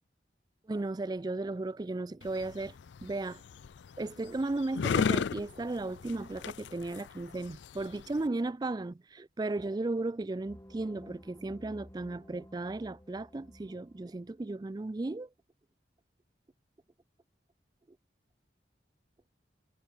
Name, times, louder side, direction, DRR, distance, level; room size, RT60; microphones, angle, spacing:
voice 1, 0.7-2.7 3.0-3.4 4.0-15.3, right 2 dB, 20° right, 0.3 m, -35 dB
sound 1, 2.2-8.3, left 6 dB, 80° left, 0.4 m, -35 dB
sound 2, 10.5-14.4, equal, 15° left, 2.1 m, -54 dB
head